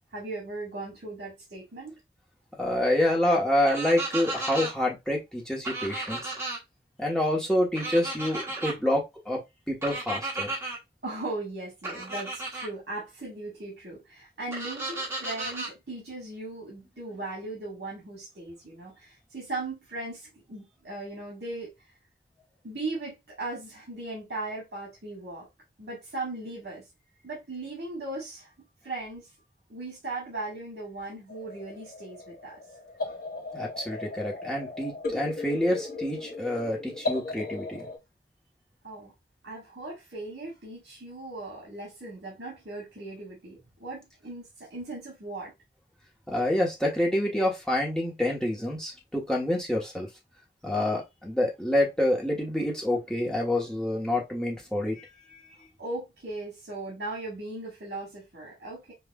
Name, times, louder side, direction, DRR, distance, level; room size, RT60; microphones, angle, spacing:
voice 1, 0.1-2.0 11.0-21.7 22.6-25.5 25.8-26.8 27.2-28.5 28.8-29.3 29.7-32.6 38.8-39.1 39.4-45.5 55.8-58.9, right 2 dB, 70° right, 1.7 m, -38 dB
voice 2, 2.6-6.3 7.0-9.4 9.7-10.5 33.5-37.9 46.3-50.1 50.6-55.4, left 1 dB, 5° left, 1.0 m, -27 dB
sound 1, 3.7-4.7 5.6-6.6 7.7-8.7 9.8-10.8 11.8-12.7 14.5-15.7, right 2 dB, 15° right, 1.2 m, -34 dB
sound 2, 31.3-38.0, left 3 dB, 55° left, 1.0 m, -36 dB
5.4 x 2.4 x 2.3 m
head